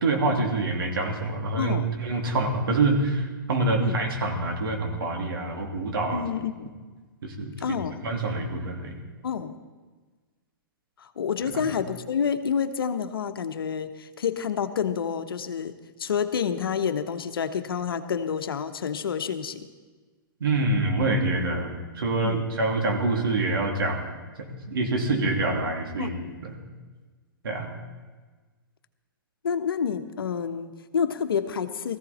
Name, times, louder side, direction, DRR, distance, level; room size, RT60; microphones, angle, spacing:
voice 1, 0.0-6.2 7.2-7.8 8.0-9.0 20.4-24.0 24.4-26.1 26.4-26.5 27.4-27.7, right 2 dB, 80° right, 2 dB, 2.9 m, -26 dB
voice 2, 1.6-1.9 3.8-4.0 6.1-6.7 7.6-8.1 9.2-9.5 11.0-19.7 22.2-22.5 26.0-26.3 29.4-32.0, left 7 dB, 80° left, 9 dB, 1.1 m, -29 dB
18.0 x 15.0 x 4.3 m, 1.4 s
hypercardioid pair, 125°, 12 cm